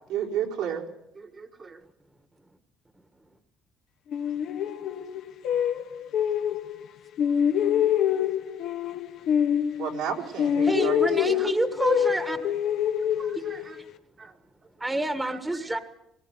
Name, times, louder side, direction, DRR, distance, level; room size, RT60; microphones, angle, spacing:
voice 1, 0.1-0.8 9.8-11.4, right 8 dB, 85° right, 0 dB, 3.9 m, -31 dB
voice 2, 1.2-1.8 11.3-11.5 12.4-12.5 13.0-13.8 14.2-14.3 15.2-15.6, right 4 dB, 30° right, 4 dB, 1.5 m, -45 dB
sound 1, 4.1-6.9 7.2-10.1 10.4-13.9, left 9 dB, 65° left, 1.2 m, -26 dB
voice 3, 10.6-12.4 14.8-15.8, right 1 dB, 10° right, 9 dB, 1.5 m, -27 dB
20.0 x 19.0 x 7.9 m, 0.82 s
cardioid pair, 130°, 0 cm